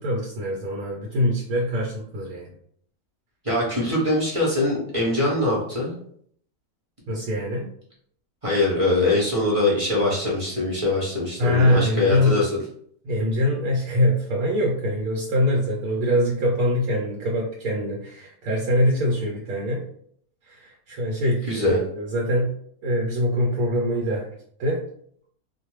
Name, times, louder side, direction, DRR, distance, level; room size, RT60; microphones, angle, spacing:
voice 1, 0.0-2.5 7.1-7.7 11.4-12.4 13.0-19.8 20.5-22.5 22.8-24.3 24.6-24.8, left 1 dB, 80° right, -2 dB, 1.2 m, -23 dB
voice 2, 3.4-6.0 8.4-12.5 21.5-21.8, left 2 dB, 30° right, -4 dB, 0.7 m, -22 dB
2.5 x 2.2 x 3.0 m, 0.64 s
omnidirectional pair, 1.5 m